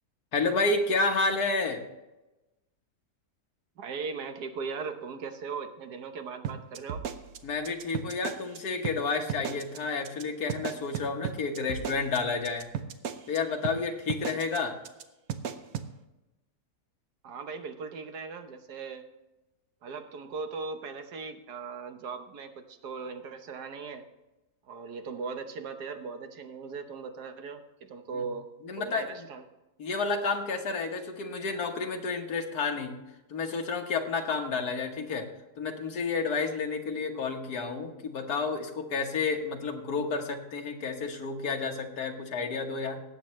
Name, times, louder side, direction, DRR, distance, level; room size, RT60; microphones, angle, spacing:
voice 1, 0.3-1.8 7.4-12.7 13.3-14.8 28.1-28.2 28.6-29.2 29.8-33.0 33.3-35.3 35.6-43.0, left 4 dB, 75° left, 3 dB, 1.8 m, -30 dB
voice 2, 3.8-7.0 17.2-19.0 19.8-24.0 24.7-29.4, right 5 dB, 85° right, 7 dB, 1.6 m, -38 dB
sound 1, 6.4-8.6 8.8-9.0 9.3-9.8 10.0-10.2 10.5-13.4 13.6-13.8 14.1-14.6 14.8-15.0 15.3-15.9, right 8 dB, 70° right, 1.2 m, -35 dB
18.5 x 8.2 x 3.2 m, 1.0 s
omnidirectional pair, 1.7 m